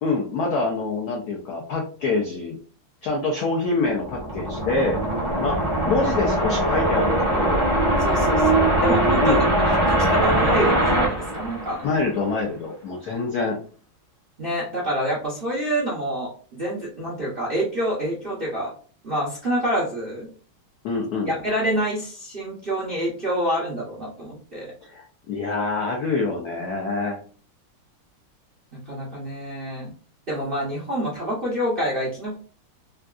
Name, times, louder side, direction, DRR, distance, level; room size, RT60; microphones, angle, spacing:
voice 1, 0.0-2.6 3.0-5.0 5.4-7.7 9.2-9.4 11.8-13.6 20.8-21.3 24.9-27.2, left 3 dB, 80° left, 0 dB, 0.8 m, -25 dB
Frequency Riser, 3.9-12.2, right 1 dB, 25° right, 0.6 m, -21 dB
voice 2, 8.0-9.4 9.9-11.8 14.4-18.7 19.0-20.3 21.3-24.7 28.7-29.9 30.3-32.4, equal, 80° right, -5 dB, 0.5 m, -27 dB
3.8 x 2.3 x 2.4 m, 0.42 s
omnidirectional pair, 2.4 m